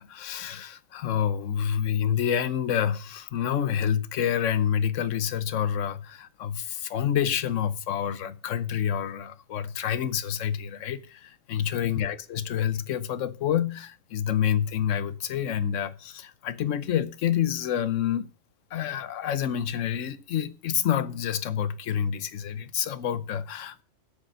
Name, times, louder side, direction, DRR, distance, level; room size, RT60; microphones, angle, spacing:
voice 1, 0.0-18.3 18.7-23.8, left 9 dB, 80° left, 1.1 m, -28 dB
9.6 x 6.8 x 6.3 m
omnidirectional pair, 1.3 m